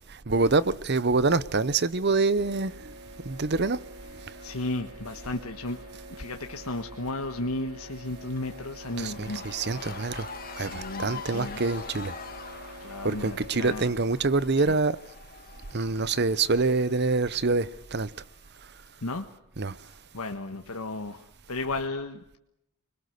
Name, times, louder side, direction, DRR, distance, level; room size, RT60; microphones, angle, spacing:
voice 1, 0.1-2.9 3.2-3.8 8.9-10.3 10.6-12.1 13.0-15.0 15.7-18.1 19.6-19.8, right 3 dB, 50° right, 0.8 m, -26 dB
sound 1, 2.4-13.5, right 1 dB, 85° right, 3.2 m, -46 dB
Cheering / Crowd, 3.3-18.6, left 5 dB, 40° left, 1.9 m, -46 dB
voice 2, 4.4-5.8 6.2-11.6 12.3-12.4 12.8-13.9 14.2-14.3 14.5-14.8 19.0-19.3 19.8-22.4, left 2 dB, 85° left, 1.5 m, -35 dB
24.5 x 22.0 x 6.6 m
head